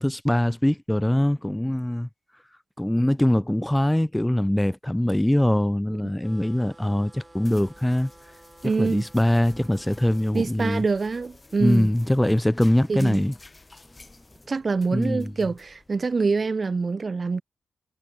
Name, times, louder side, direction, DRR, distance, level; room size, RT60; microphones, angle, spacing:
voice 1, 0.0-2.1 2.8-8.1 8.6-10.8 11.6-13.3 14.9-15.3, left 1 dB, 10° left, 0.8 m, -22 dB
sound 1, 6.2-10.3, right 2 dB, 25° right, 4.7 m, -52 dB
sound 2, 6.5-16.5, left 2 dB, 30° left, 3.7 m, -52 dB
voice 2, 8.6-9.0 10.3-11.9 12.9-13.2 14.5-17.4, right 4 dB, 50° right, 0.7 m, -25 dB
cardioid pair, 50°, 0 cm